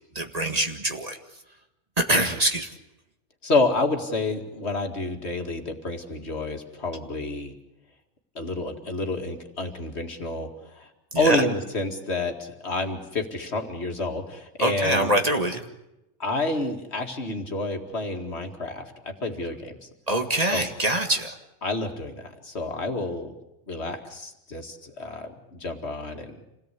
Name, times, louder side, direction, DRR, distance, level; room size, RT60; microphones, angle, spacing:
voice 1, 0.1-1.2 2.0-2.7 11.1-11.4 14.6-15.6 20.1-21.4, right 1 dB, 35° right, 5 dB, 1.9 m, -24 dB
voice 2, 3.4-7.5 8.4-10.9 11.2-15.1 16.2-19.9 20.5-20.6 21.6-23.4 23.7-26.4, left 2 dB, 65° left, 4 dB, 2.4 m, -29 dB
27.5 x 17.5 x 8.4 m, 0.91 s
omnidirectional pair, 1.2 m